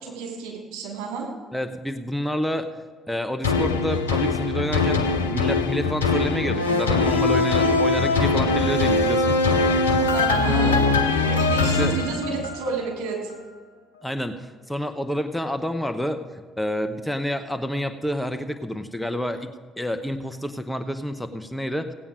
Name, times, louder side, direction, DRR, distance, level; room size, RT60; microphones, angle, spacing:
voice 1, 0.0-1.3 10.1-13.3, right 4 dB, 70° right, -1 dB, 3.2 m, -31 dB
voice 2, 1.5-2.7 3.1-9.4 10.5-10.7 11.8-12.0 14.0-21.9, equal, 5° left, 8 dB, 1.0 m, -28 dB
sound 1, 3.4-12.8 13.3-13.4, left 3 dB, 90° left, 0.7 m, -21 dB
17.0 x 8.8 x 5.1 m, 1.5 s
hypercardioid pair, 50°, 0 cm